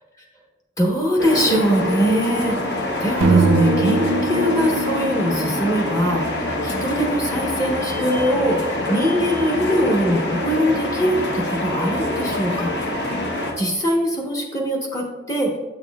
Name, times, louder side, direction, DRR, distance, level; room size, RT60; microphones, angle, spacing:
voice 1, 0.8-12.7 13.6-15.6, equal, 20° left, -1 dB, 1.0 m, -22 dB
sound 1, 1.2-13.5, left 1 dB, 60° left, 0.9 m, -25 dB
sound 2, 3.2-7.4, right 3 dB, 85° right, 0.4 m, -22 dB
7.1 x 6.7 x 2.3 m, 1.2 s
head